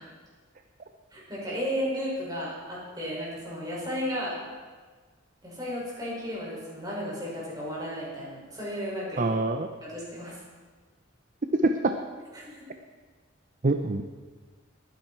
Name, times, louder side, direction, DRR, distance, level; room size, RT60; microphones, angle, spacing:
voice 1, 1.1-4.4 5.4-9.2 9.8-10.4 12.3-12.6, equal, 20° right, -6 dB, 6.0 m, -34 dB
voice 2, 9.2-9.7 11.5-12.0 13.6-14.0, right 2 dB, 40° right, 6 dB, 0.7 m, -25 dB
21.5 x 10.5 x 4.5 m, 1.4 s
head